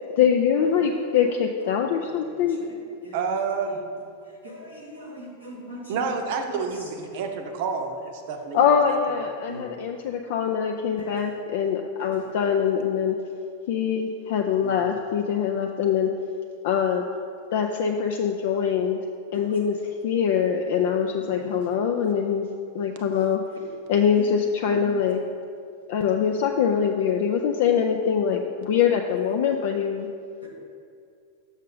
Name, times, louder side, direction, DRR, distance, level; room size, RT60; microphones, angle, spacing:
voice 1, 0.1-2.6 8.5-13.2 13.7-16.1 16.6-17.0 17.5-19.0 19.3-19.8 20.0-22.4 22.7-23.4 23.9-25.2 25.9-30.1, left 7 dB, 55° left, 3 dB, 0.4 m, -23 dB
voice 2, 3.1-3.8 5.9-8.8, right 5 dB, 50° right, 5 dB, 0.7 m, -29 dB
voice 3, 4.4-5.8 6.5-6.6 9.5-9.6 24.7-24.9 30.4-30.5, right 1 dB, 85° left, -1 dB, 1.3 m, -39 dB
6.4 x 6.2 x 3.9 m, 2.3 s
figure-of-eight pair, 90°, 0 cm